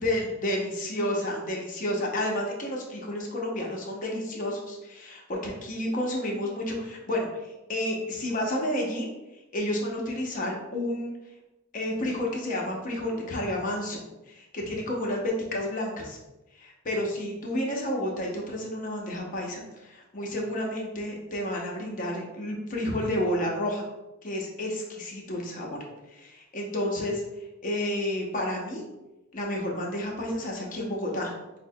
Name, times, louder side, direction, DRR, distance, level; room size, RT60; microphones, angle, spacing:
voice 1, 0.0-9.1 9.5-11.1 11.7-16.2 16.6-23.9 24.2-25.8 26.1-27.2 27.6-28.8 29.3-31.3, left 1 dB, 40° left, -1 dB, 0.7 m, -30 dB
5.0 x 2.1 x 2.7 m, 0.98 s
head